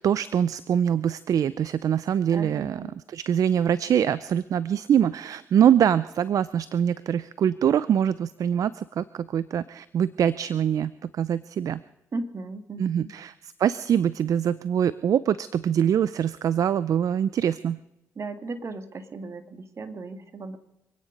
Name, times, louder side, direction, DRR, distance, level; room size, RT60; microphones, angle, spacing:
voice 1, 0.0-2.8 3.1-11.8 12.8-17.8, right 9 dB, 65° right, 17 dB, 0.5 m, -24 dB
voice 2, 2.3-2.9 12.1-13.1 18.2-20.6, right 3 dB, 50° right, 8 dB, 2.0 m, -36 dB
26.0 x 9.8 x 5.3 m, 0.88 s
supercardioid pair, 60°, 6 cm